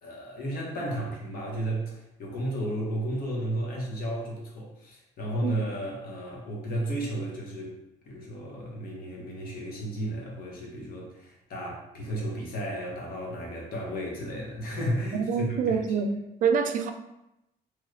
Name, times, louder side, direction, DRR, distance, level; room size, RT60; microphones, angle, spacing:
voice 1, 0.0-7.8 8.0-15.8, right 1 dB, 60° left, -2 dB, 1.0 m, -33 dB
voice 2, 15.1-16.9, right 6 dB, 55° right, 7 dB, 0.4 m, -26 dB
3.1 x 2.3 x 3.2 m, 0.86 s
cardioid pair, 110°, 17 cm